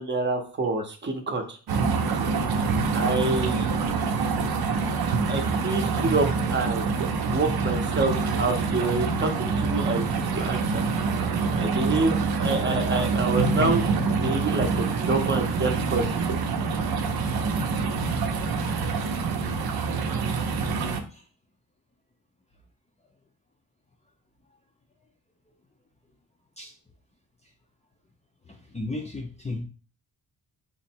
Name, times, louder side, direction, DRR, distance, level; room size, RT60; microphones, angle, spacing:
voice 1, 0.0-1.6 2.9-3.7 5.3-6.9 7.3-10.9 11.5-13.9 14.2-16.2 17.1-17.2, right 3 dB, 30° right, 2 dB, 0.7 m, -27 dB
sound 1, 1.7-21.0, right 4 dB, 80° right, 0.6 m, -26 dB
voice 2, 28.5-29.6, left 2 dB, 20° left, 2 dB, 0.5 m, -34 dB
3.9 x 2.1 x 4.3 m, 0.38 s
wide cardioid pair, 135°, 37 cm